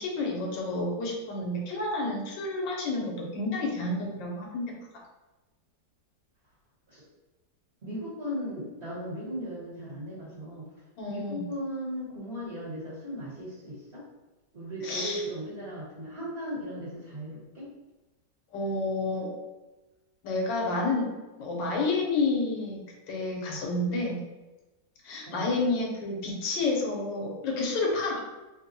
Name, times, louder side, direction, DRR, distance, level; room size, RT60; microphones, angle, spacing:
voice 1, 0.0-4.7 11.0-11.5 14.8-15.2 18.5-19.3 20.2-21.1 21.4-24.2 25.0-28.2, left 2 dB, 85° left, -1 dB, 1.5 m, -30 dB
voice 2, 7.8-10.6 11.1-14.0 14.5-17.7 25.3-25.5, equal, 40° right, -9 dB, 1.4 m, -37 dB
3.4 x 2.2 x 4.0 m, 1.1 s
omnidirectional pair, 1.9 m